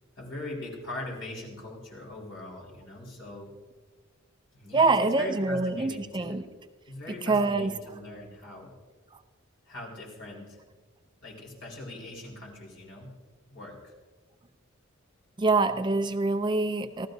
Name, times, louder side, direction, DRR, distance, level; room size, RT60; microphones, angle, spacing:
voice 1, 0.2-3.5 4.5-6.4 6.8-8.7 9.7-10.6 11.2-13.1 13.5-13.9, left 1 dB, 60° left, -3 dB, 4.5 m, -41 dB
voice 2, 4.7-6.4 7.3-7.7 15.4-17.1, right 3 dB, 20° right, 9 dB, 0.4 m, -25 dB
26.0 x 15.0 x 2.7 m, 1.4 s
head